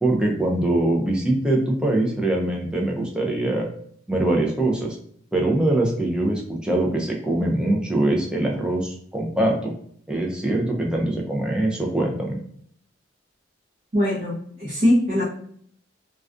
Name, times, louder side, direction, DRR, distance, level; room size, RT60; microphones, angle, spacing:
voice 1, 0.0-3.7 4.1-5.0 5.3-9.7 10.1-12.4, right 1 dB, 5° right, -1 dB, 0.4 m, -23 dB
voice 2, 13.9-15.2, left 1 dB, 45° right, -7 dB, 0.6 m, -21 dB
2.3 x 2.2 x 2.4 m, 0.63 s
head